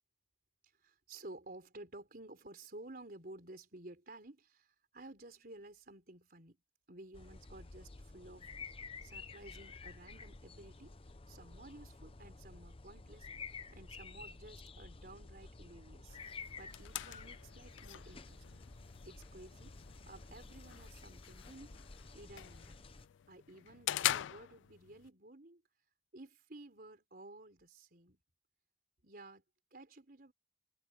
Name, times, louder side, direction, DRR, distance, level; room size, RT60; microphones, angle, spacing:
voice 1, 0.8-6.6 6.9-8.5 9.0-11.0 11.3-16.2 16.6-18.6 19.1-19.8 20.1-21.8 22.1-22.8 23.3-25.6 26.1-28.2 29.0-29.4 29.7-30.3, right 2 dB, 50° right, 4.2 m, -54 dB
sound 1, 7.1-23.1, left 4 dB, 30° left, 0.7 m, -51 dB
sound 2, 16.1-25.1, left 13 dB, 70° left, 0.3 m, -43 dB
head